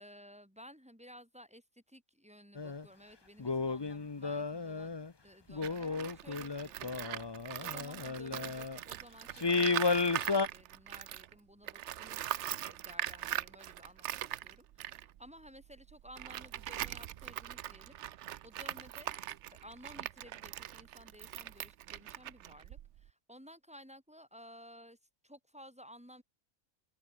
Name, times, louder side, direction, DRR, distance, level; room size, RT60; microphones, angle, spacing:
voice 1, 0.0-25.0 25.2-26.2, equal, 5° right, 3.9 m, -56 dB
sound 1, 2.6-2.8 3.4-5.1 5.5-8.8 9.4-10.5, left 4 dB, 25° left, 0.7 m, -33 dB
Tools, 5.5-11.3 11.6-23.1, right 12 dB, 65° right, 0.9 m, -41 dB
open air
omnidirectional pair, 1.4 m